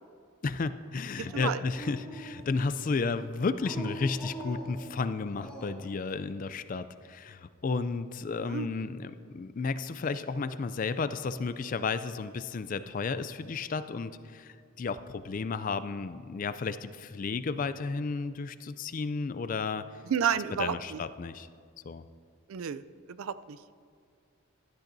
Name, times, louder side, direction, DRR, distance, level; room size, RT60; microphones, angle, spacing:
voice 1, 0.4-19.8 20.6-21.5 21.8-22.0, left 4 dB, 40° left, 13 dB, 0.3 m, -33 dB
Dog, 1.2-2.7 3.5-5.9, right 1 dB, 5° left, 1.2 m, -43 dB
voice 2, 20.1-21.0 22.5-22.8 23.1-23.6, right 8 dB, 75° right, 14 dB, 0.4 m, -31 dB
16.0 x 11.5 x 2.7 m, 2.1 s
head